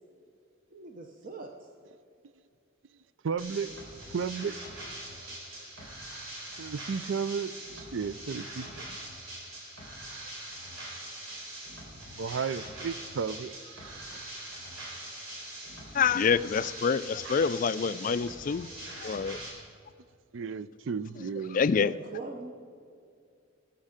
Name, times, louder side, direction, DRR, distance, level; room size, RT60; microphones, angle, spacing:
voice 1, 0.7-1.7 21.8-22.5, right 3 dB, 40° right, 0.8 m, -41 dB
voice 2, 3.2-3.7 4.1-4.5 6.6-9.0 12.2-14.1 17.2-17.3 20.3-21.6, right 6 dB, 70° right, 0.4 m, -34 dB
sound 1, 3.4-19.5, right 1 dB, 85° right, 3.8 m, -43 dB
voice 3, 15.9-18.7 19.0-19.4 21.5-21.9, left 6 dB, 40° left, 0.3 m, -26 dB
20.5 x 8.3 x 5.1 m
head